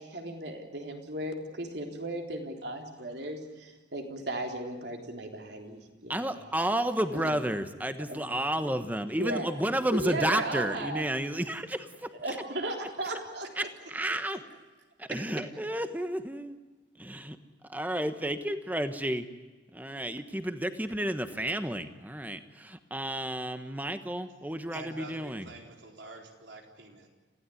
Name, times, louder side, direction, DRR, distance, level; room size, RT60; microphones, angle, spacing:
voice 1, 0.0-6.4 7.1-7.4 8.1-8.3 9.2-9.5 9.9-11.1 12.1-13.5 14.1-14.2 15.3-15.4, right 1 dB, 65° right, 2 dB, 3.6 m, -36 dB
voice 2, 6.1-12.1 13.6-14.4 15.0-16.6 17.0-17.3 17.7-19.2 19.7-25.5, right 1 dB, 10° right, 9 dB, 1.2 m, -31 dB
voice 3, 24.7-27.1, right 2 dB, 80° right, 2 dB, 4.2 m, -46 dB
29.0 x 16.0 x 10.0 m, 1.2 s
head